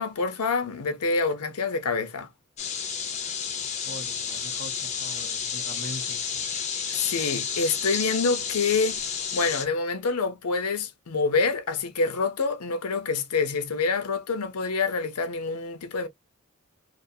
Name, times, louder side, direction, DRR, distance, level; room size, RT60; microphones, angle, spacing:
voice 1, 0.0-2.3 6.9-16.1, left 4 dB, 85° left, 0.6 m, -27 dB
sound 1, 2.6-9.6, left 7 dB, 30° left, 0.5 m, -31 dB
voice 2, 3.7-6.5, right 1 dB, 45° right, 0.8 m, -42 dB
2.4 x 2.4 x 2.6 m
head